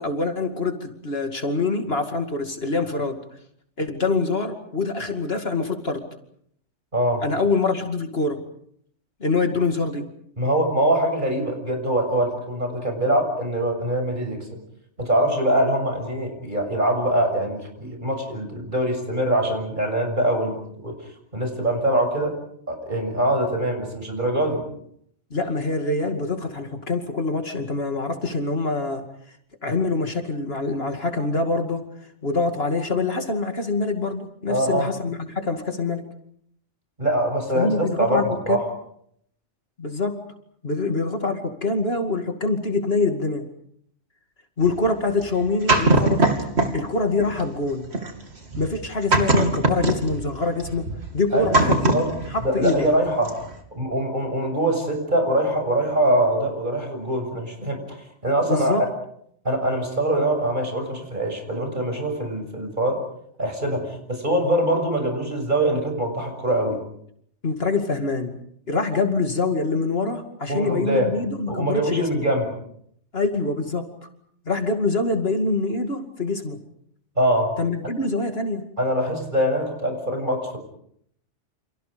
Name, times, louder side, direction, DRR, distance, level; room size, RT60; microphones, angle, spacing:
voice 1, 0.0-3.2 3.8-6.1 7.2-8.4 9.2-10.1 25.3-29.0 29.6-31.8 32.2-36.0 37.5-38.6 39.8-40.2 40.6-43.4 44.6-46.3 46.7-47.9 48.6-50.9 51.1-52.8 58.5-58.8 67.4-68.4 68.7-72.3 73.1-73.9 74.5-76.6 77.6-78.7, left 3 dB, 55° left, 5 dB, 2.6 m, -25 dB
voice 2, 6.9-7.2 10.4-14.5 15.0-20.9 21.3-22.4 22.7-24.6 34.5-34.9 37.0-38.6 51.3-52.2 52.4-53.4 53.8-58.9 59.4-63.0 63.4-66.8 70.5-71.1 71.5-72.5 77.2-77.5 78.8-80.6, right 1 dB, 40° right, 4 dB, 7.1 m, -23 dB
sound 1, 44.6-46.9 47.2-53.0 53.3-53.6, right 2 dB, 65° right, 3.2 m, -22 dB
29.5 x 28.0 x 5.2 m, 0.69 s
omnidirectional pair, 1.2 m